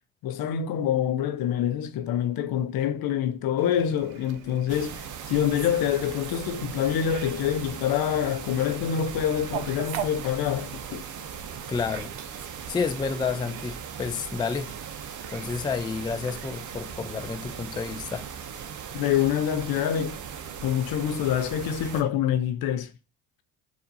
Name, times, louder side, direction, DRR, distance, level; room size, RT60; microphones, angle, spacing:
voice 1, 0.2-11.0 18.9-20.2 20.6-22.9, left 9 dB, 60° left, 0.7 m, -26 dB
Fowl, 3.6-21.6, right 9 dB, 80° right, 0.7 m, -44 dB
sound 1, 4.7-22.0, right 7 dB, 45° right, 0.7 m, -39 dB
voice 2, 11.7-12.1 12.7-14.7 15.3-18.3, left 5 dB, 10° left, 0.3 m, -30 dB
6.6 x 2.6 x 2.6 m
hypercardioid pair, 65°, 42 cm